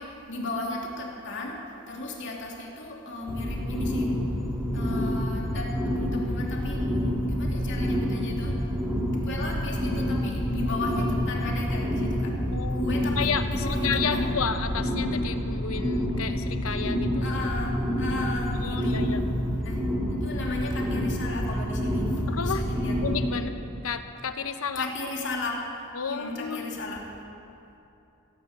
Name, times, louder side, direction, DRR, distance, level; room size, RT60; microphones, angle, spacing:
voice 1, 0.0-4.1 4.7-6.8 7.2-8.7 9.2-12.4 12.7-14.4 17.2-19.1 19.6-23.0 24.7-25.7 26.1-27.1, left 2 dB, 60° left, -1 dB, 2.8 m, -35 dB
sound 1, 3.3-23.3, equal, 15° right, 2.4 m, -28 dB
voice 2, 12.5-17.2 18.6-19.2 22.3-22.6 23.0-23.5 23.8-24.9 25.9-26.7, left 5 dB, 80° left, 8 dB, 1.0 m, -31 dB
16.0 x 11.0 x 8.1 m, 2.8 s
head